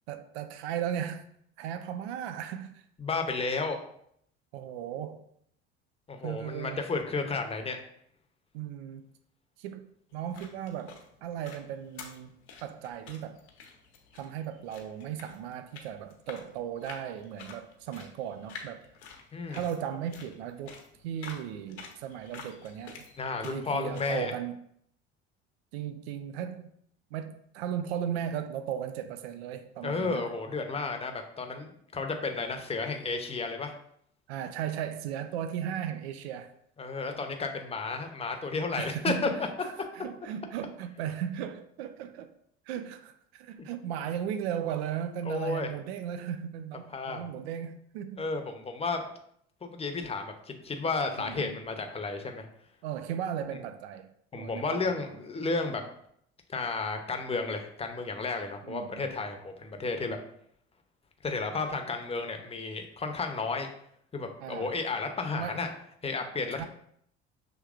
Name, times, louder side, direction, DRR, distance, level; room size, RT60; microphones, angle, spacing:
voice 1, 0.1-1.3 1.6-2.8 4.5-5.2 6.2-6.8 8.5-9.1 9.6-9.9 10.1-12.3 12.6-13.4 14.1-18.9 19.5-23.0 23.4-24.5 25.7-26.7 27.1-30.3 34.3-36.5 38.8-39.5 40.0-42.3 42.7-48.2 51.2-51.6 52.8-54.1 54.4-55.1 58.6-59.1 64.4-64.7 65.3-65.7 66.5-66.7, right 9 dB, 70° right, 0.5 m, -36 dB
voice 2, 3.0-3.8 6.1-7.8 19.3-19.6 23.2-24.3 29.8-33.7 36.8-39.1 45.2-45.7 46.9-47.2 48.2-49.1 49.6-52.4 54.3-55.8 56.5-60.2 61.2-63.7 64.1-65.7 66.0-66.7, left 4 dB, 20° left, 0.8 m, -32 dB
sound 1, 10.1-24.2, left 5 dB, 75° left, 0.9 m, -50 dB
6.2 x 3.2 x 2.4 m
hypercardioid pair, 65°, 33 cm